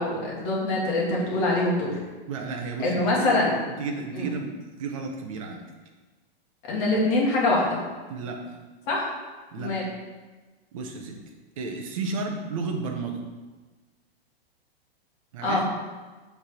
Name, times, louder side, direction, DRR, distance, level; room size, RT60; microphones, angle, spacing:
voice 1, 0.0-1.9 2.8-3.6 4.1-4.3 6.7-7.8 8.9-9.1 9.6-9.9 15.4-15.6, left 2 dB, 25° left, -4 dB, 1.3 m, -24 dB
voice 2, 2.3-3.2 3.6-5.6 8.1-8.6 9.5-9.8 10.7-13.2 15.3-15.7, right 4 dB, 35° right, 3 dB, 0.7 m, -33 dB
7.1 x 3.4 x 5.7 m, 1.3 s
hypercardioid pair, 175°, 32 cm